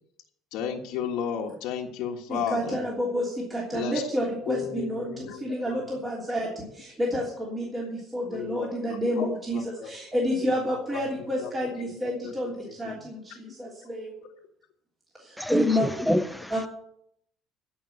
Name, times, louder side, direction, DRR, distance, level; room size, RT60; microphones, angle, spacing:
voice 1, 0.5-2.8 3.7-4.0 4.5-5.8 8.3-9.9 10.4-10.5 11.4-13.0, left 8 dB, 75° left, 0 dB, 1.5 m, -34 dB
voice 2, 2.3-14.1 15.2-15.9 16.5-16.7, equal, 20° right, -4 dB, 3.1 m, -30 dB
voice 3, 15.4-16.5, equal, ahead, 10 dB, 0.7 m, -25 dB
15.0 x 5.7 x 8.6 m, 0.73 s
cardioid pair, 130°, 0 cm